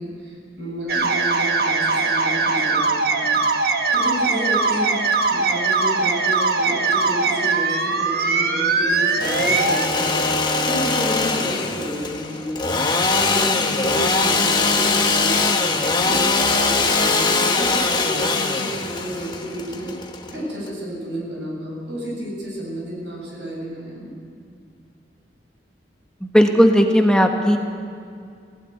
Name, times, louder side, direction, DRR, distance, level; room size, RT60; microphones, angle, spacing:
voice 1, 0.0-3.4 3.9-5.0 5.3-10.2 10.6-12.8 13.2-15.7 16.0-19.9 20.3-24.2, equal, 85° right, -1 dB, 7.2 m, -31 dB
sound 1, 0.9-9.9, right 4 dB, 60° right, 1.3 m, -21 dB
Engine / Sawing, 9.0-20.7, left 3 dB, 25° left, 1.2 m, -21 dB
voice 2, 26.2-27.6, equal, 5° left, 3 dB, 1.2 m, -16 dB
17.5 x 16.5 x 9.3 m, 2.3 s
head